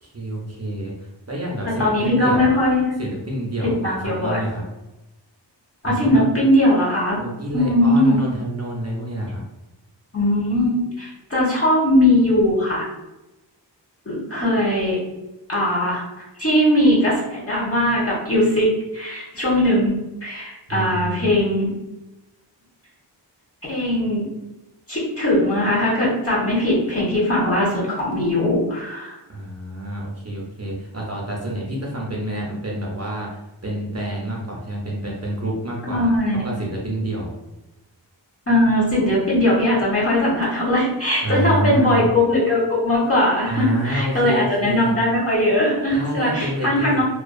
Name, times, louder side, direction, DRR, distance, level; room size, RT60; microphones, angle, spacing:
voice 1, 0.0-0.9 1.3-2.5 3.0-4.6 5.8-6.2 7.2-9.4 20.7-21.3 29.3-36.1 36.4-37.4 41.2-42.1 43.5-44.9 45.9-47.0, right 1 dB, 35° right, -2 dB, 0.5 m, -28 dB
voice 2, 1.8-2.9 3.6-4.4 5.8-7.2 7.5-8.2 10.1-12.9 14.1-15.0 15.5-20.0 20.2-21.7 23.7-24.2 24.9-29.2 35.8-36.5 38.5-47.0, left 1 dB, 30° left, -7 dB, 0.9 m, -20 dB
2.4 x 2.3 x 2.3 m, 0.97 s
wide cardioid pair, 55°, 43 cm